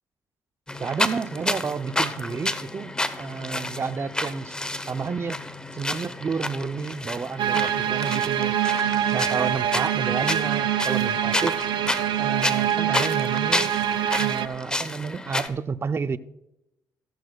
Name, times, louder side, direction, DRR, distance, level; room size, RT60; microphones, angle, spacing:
sound 1, 0.7-15.5, left 1 dB, 10° left, 0.9 m, -31 dB
voice 1, 0.8-4.5 4.9-5.4 5.7-8.5 9.1-11.6 12.2-13.7 14.2-16.2, right 5 dB, 35° right, 0.6 m, -30 dB
sound 2, 7.4-14.5, right 10 dB, 80° right, 0.5 m, -25 dB
15.0 x 14.0 x 2.3 m
cardioid pair, 80°, 7 cm